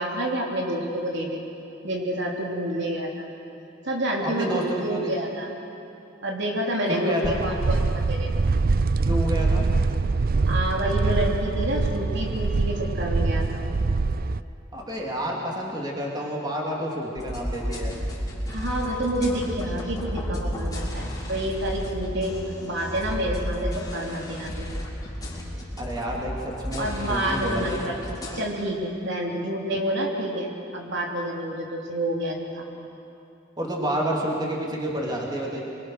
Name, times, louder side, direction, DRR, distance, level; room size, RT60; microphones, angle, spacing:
voice 1, 0.0-1.4 1.8-3.3 3.8-5.5 6.2-8.3 10.5-13.6 18.5-22.4 22.6-24.7 26.8-32.7, right 1 dB, 65° right, -1 dB, 3.2 m, -28 dB
voice 2, 4.2-5.1 6.9-7.4 9.0-9.6 14.7-17.9 25.8-27.8 33.6-35.6, equal, 20° right, -2 dB, 2.9 m, -29 dB
sound 1, 7.2-14.4, right 3 dB, 50° right, 0.5 m, -24 dB
sound 2, 17.1-28.4, equal, 20° left, 4.4 m, -33 dB
26.0 x 23.0 x 6.5 m, 2.8 s
head